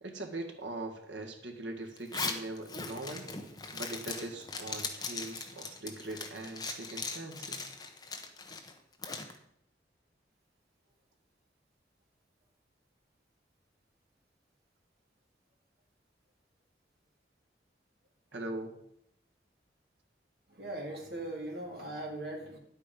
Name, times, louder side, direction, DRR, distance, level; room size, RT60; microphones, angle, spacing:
voice 1, 0.0-3.3 3.7-7.7 18.3-18.7, right 2 dB, 85° right, 4 dB, 1.8 m, -41 dB
Zipper (clothing), 2.0-9.3, left 4 dB, 20° left, 1.0 m, -39 dB
voice 2, 20.5-22.6, right 1 dB, 60° right, -2 dB, 2.9 m, -39 dB
10.5 x 8.5 x 5.3 m, 0.74 s
head